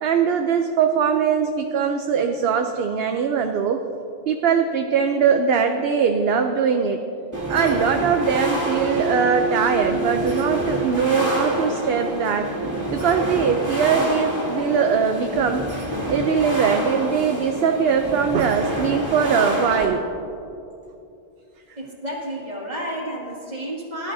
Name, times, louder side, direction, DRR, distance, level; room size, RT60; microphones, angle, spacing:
voice 1, 0.0-3.8 4.3-7.0 7.5-12.5 12.9-15.6 16.1-20.0, right 6 dB, 75° right, 5 dB, 0.8 m, -21 dB
sound 1, 7.3-19.9, equal, 15° right, 2.4 m, -27 dB
voice 2, 21.8-24.1, equal, 45° right, -3 dB, 2.3 m, -31 dB
18.5 x 11.5 x 2.7 m, 2.8 s
omnidirectional pair, 1.1 m